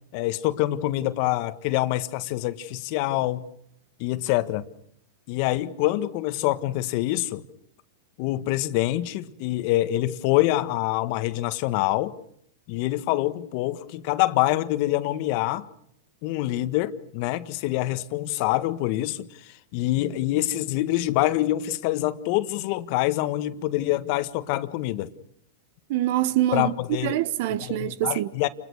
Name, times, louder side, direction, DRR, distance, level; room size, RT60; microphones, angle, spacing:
voice 1, 0.1-3.4 4.0-4.6 5.3-7.4 8.2-12.1 12.7-15.6 16.2-25.1 26.5-27.2 27.6-28.5, left 16 dB, 55° left, 1.5 m, -25 dB
voice 2, 25.9-26.7 27.0-28.3, right 13 dB, 60° right, 1.2 m, -25 dB
28.5 x 21.0 x 6.5 m
hypercardioid pair, 115°, 0 cm